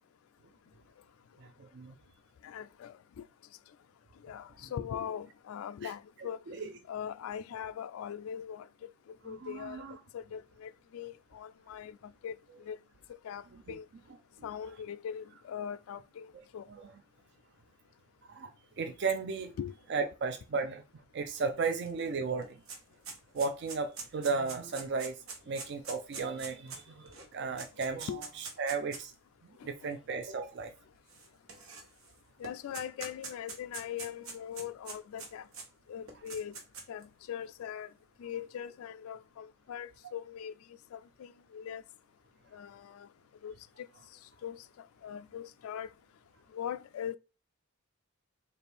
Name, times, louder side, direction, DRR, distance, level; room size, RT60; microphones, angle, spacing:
voice 1, 1.4-1.9 5.8-5.9 6.5-6.7 9.3-9.9 16.8-16.9 18.3-19.5 19.9-20.8 21.1-22.6 23.3-25.2 25.5-28.1 28.6-29.1 29.6-30.7, right 4 dB, 50° right, 0.4 m, -34 dB
voice 2, 2.4-2.9 4.2-6.4 6.9-8.7 9.2-9.8 10.1-11.9 12.2-12.4 12.7-12.8 13.2-13.4 13.7-13.9 14.4-16.3 16.5-16.7 19.6-19.7 28.1-28.2 32.4-35.4 35.9-36.5 36.9-37.9 38.2-40.5 40.9-41.8 42.5-42.8 43.4-43.6 44.4-44.6 45.0-45.9 46.5-47.2, left 8 dB, 80° left, 0.3 m, -40 dB
sound 1, 21.9-22.0 22.2-29.1 29.9-30.0 31.1-32.1 32.4-35.7 36.1-37.0, right 4 dB, 75° right, 1.1 m, -44 dB
4.2 x 2.6 x 3.3 m
head